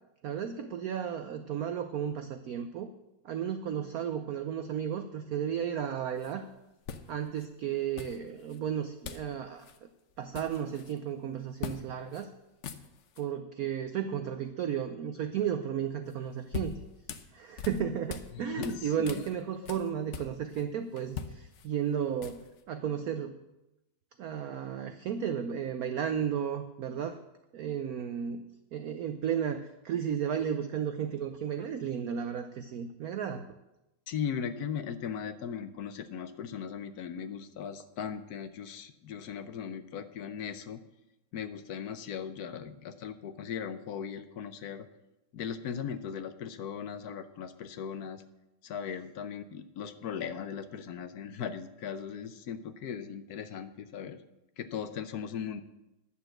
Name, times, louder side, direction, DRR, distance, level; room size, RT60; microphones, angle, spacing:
voice 1, 0.2-2.9 3.2-6.4 7.1-9.7 10.2-12.3 13.2-16.8 17.3-23.4 24.2-27.2 27.5-28.4 28.7-33.4, right 8 dB, 70° right, 8 dB, 0.9 m, -33 dB
sound 1, 6.2-6.3 6.8-7.5 8.0-8.6 9.0-9.3 9.6-9.8 10.1-11.0 11.6-11.8 12.1-12.2 12.5-13.2 16.1-18.3 18.6-20.6 21.0-22.6, left 7 dB, 80° left, 0.6 m, -42 dB
voice 2, 18.3-19.2 34.1-40.8 41.3-44.9 45.3-48.2 48.6-54.2 54.6-55.6, left 7 dB, 65° left, 10 dB, 1.0 m, -38 dB
11.0 x 7.0 x 7.7 m, 0.93 s
omnidirectional pair, 2.2 m